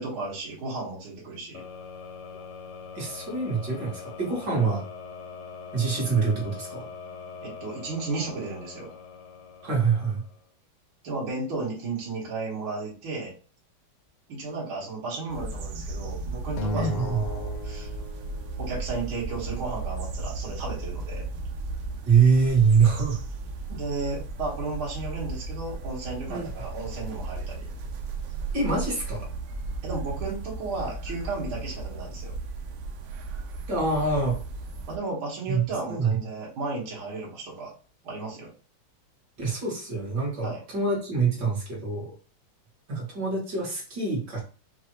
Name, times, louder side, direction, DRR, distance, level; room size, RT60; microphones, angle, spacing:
voice 1, 0.0-1.6 7.4-8.9 11.0-13.3 14.3-17.9 18.6-21.3 23.7-27.6 29.8-32.4 34.9-37.7 38.0-38.5 40.4-40.6, right 3 dB, 65° right, -5 dB, 2.3 m, -34 dB
sound 1, 1.5-10.5, left 5 dB, 65° left, 1.2 m, -42 dB
voice 2, 3.0-4.8 5.7-6.9 9.6-10.2 16.7-17.2 22.1-23.2 26.3-26.5 28.5-29.3 33.7-34.4 35.5-36.2 39.4-42.1 42.9-44.4, right 5 dB, 50° right, -4 dB, 2.3 m, -25 dB
sound 2, 15.3-35.0, right 3 dB, 85° right, 1.7 m, -35 dB
Acoustic guitar, 16.6-19.0, left 1 dB, 85° left, 1.6 m, -35 dB
5.7 x 2.7 x 3.0 m, 0.37 s
omnidirectional pair, 2.4 m